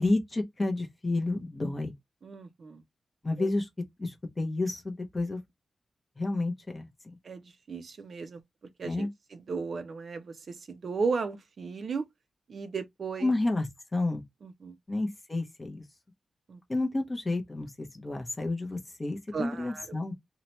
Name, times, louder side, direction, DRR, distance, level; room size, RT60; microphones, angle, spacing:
voice 1, 0.0-1.9 3.2-3.7 4.0-5.4 6.2-6.9 8.8-9.1 13.2-14.2 14.9-15.8 16.7-20.1, left 2 dB, 20° left, 0.6 m, -30 dB
voice 2, 2.2-2.8 3.4-3.5 7.2-8.4 8.8-12.1 12.5-13.3 14.4-14.8 16.5-16.6 19.3-20.0, right 4 dB, 55° right, 0.4 m, -35 dB
2.8 x 2.1 x 2.8 m
wide cardioid pair, 170°, 0 cm